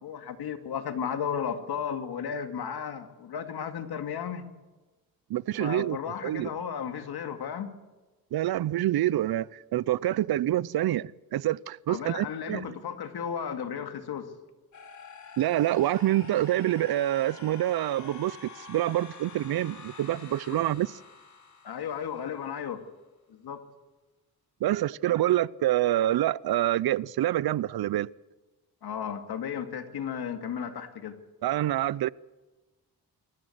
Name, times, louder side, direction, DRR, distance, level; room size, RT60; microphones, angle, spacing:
voice 1, 0.0-4.5 5.6-7.7 11.9-14.3 21.6-22.8 23.4-23.6 28.8-31.2, left 7 dB, 80° left, 2.3 m, -34 dB
voice 2, 5.3-6.5 8.3-12.7 15.4-20.9 24.6-28.1 31.4-32.1, right 13 dB, 70° right, 0.6 m, -27 dB
sound 1, 14.7-22.6, left 5 dB, 50° left, 3.5 m, -48 dB
25.0 x 14.5 x 8.0 m
cardioid pair, 95°, 38 cm